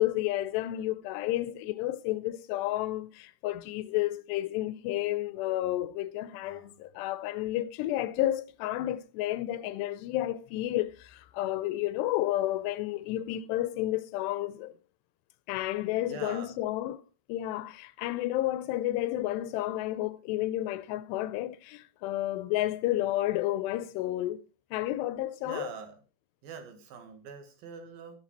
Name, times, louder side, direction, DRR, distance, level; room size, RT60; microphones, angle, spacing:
voice 1, 0.0-14.7 15.5-17.0 17.3-24.4 24.7-25.7, left 15 dB, 85° left, 2.8 m, -31 dB
voice 2, 6.4-6.8 16.0-16.6 25.5-26.0 26.4-28.2, right 6 dB, 65° right, 3.4 m, -44 dB
12.5 x 10.0 x 4.4 m
omnidirectional pair, 4.9 m